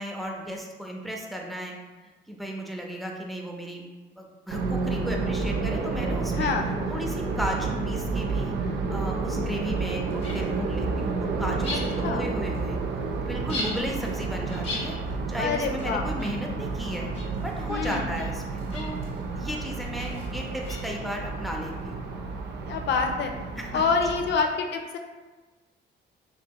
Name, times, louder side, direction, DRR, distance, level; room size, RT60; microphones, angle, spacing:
voice 1, 0.0-1.7 2.3-3.8 4.2-6.5 6.9-8.5 8.9-11.1 11.4-12.8 13.2-15.0 15.3-17.1 17.4-19.0 19.3-22.0 23.6-23.8, equal, ahead, 0 dB, 0.4 m, -34 dB
sound 1, 4.5-24.3, right 4 dB, 60° right, 0.4 m, -30 dB
voice 2, 6.3-6.7 12.0-12.2 15.4-16.0 17.7-18.1 22.7-23.3 23.7-25.0, left 5 dB, 60° left, 4 dB, 0.4 m, -26 dB
sound 2, 10.1-21.8, left 2 dB, 30° left, 0.8 m, -41 dB
2.7 x 2.7 x 2.2 m, 1.2 s
cardioid pair, 90°, 20 cm